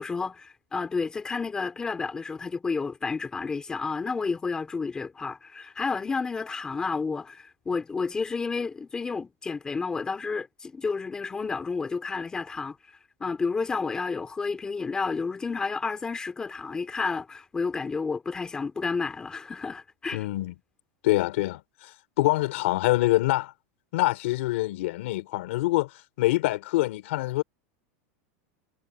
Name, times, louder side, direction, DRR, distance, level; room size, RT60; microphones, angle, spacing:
voice 1, 0.0-12.8 13.2-20.3, left 4 dB, 10° left, 3.8 m, -31 dB
voice 2, 20.1-20.5 21.0-23.5 23.9-25.9 26.2-27.4, left 18 dB, 65° left, 3.7 m, -25 dB
supercardioid pair, 175°, 7 cm